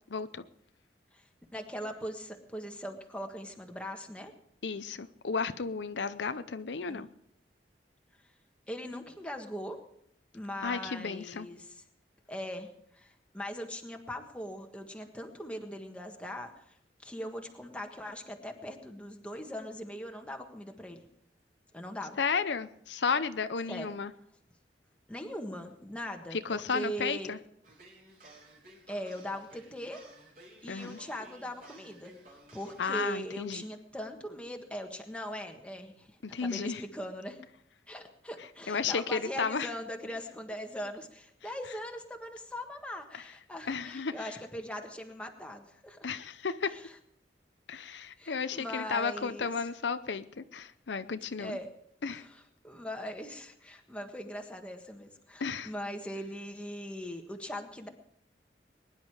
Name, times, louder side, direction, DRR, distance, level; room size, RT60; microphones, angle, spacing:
voice 1, 0.1-0.4 4.6-7.1 10.6-11.5 22.2-24.1 26.3-27.4 30.7-31.0 32.8-33.6 36.2-36.8 38.7-39.7 43.7-44.3 46.0-46.7 47.7-51.6 52.0-52.3 55.4-55.7, left 5 dB, 75° left, 11 dB, 0.6 m, -33 dB
voice 2, 1.5-4.3 6.9-7.1 8.7-9.8 10.3-11.8 12.3-12.7 12.9-21.1 21.7-22.2 23.7-23.9 25.1-27.3 28.9-30.0 30.6-37.4 37.9-46.1 46.7-46.8 48.2-49.7 51.4-51.7 52.0-57.9, equal, 5° left, 3 dB, 1.5 m, -40 dB
sound 1, 27.6-33.0, right 1 dB, 50° right, 4.1 m, -55 dB
21.5 x 10.5 x 4.9 m, 0.72 s
head